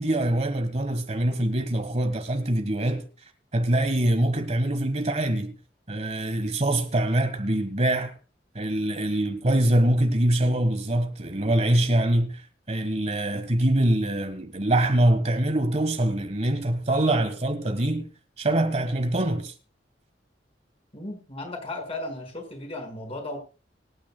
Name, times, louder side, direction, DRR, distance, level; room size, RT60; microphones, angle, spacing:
voice 1, 0.0-3.1 3.5-5.5 5.9-8.2 8.5-18.1 18.4-19.5, right 1 dB, 40° right, 1.4 m, -24 dB
voice 2, 20.9-23.4, left 2 dB, 35° left, 5.1 m, -35 dB
25.0 x 9.7 x 2.2 m
head